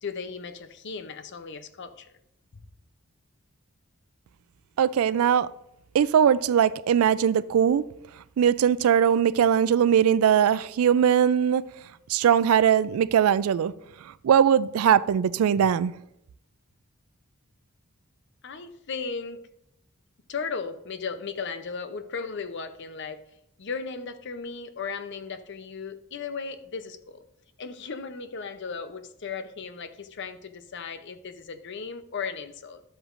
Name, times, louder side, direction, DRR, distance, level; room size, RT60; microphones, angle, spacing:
voice 1, 0.0-2.1 18.4-19.4 20.3-23.2 23.6-27.2 27.6-32.8, left 5 dB, 55° left, 0.6 m, -36 dB
voice 2, 4.8-5.5 5.9-7.8 8.4-11.6 12.1-13.7 14.2-15.9, right 8 dB, 85° right, 0.3 m, -20 dB
12.0 x 7.9 x 2.5 m
head